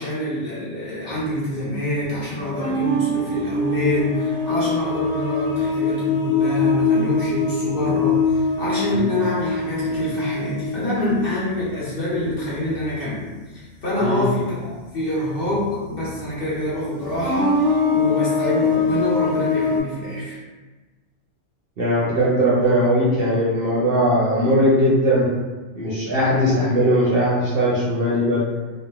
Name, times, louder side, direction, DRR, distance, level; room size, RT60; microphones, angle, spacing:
voice 1, 0.0-20.4, left 1 dB, 50° left, -9 dB, 0.9 m, -26 dB
sound 1, 2.3-12.3 12.7-12.9 14.5-14.6 15.6-15.7 17.0-19.8, left 3 dB, 20° left, 0.6 m, -23 dB
voice 2, 21.8-25.3 25.8-28.4, equal, 60° right, -7 dB, 0.7 m, -19 dB
3.0 x 2.0 x 2.3 m, 1.3 s
omnidirectional pair, 1.3 m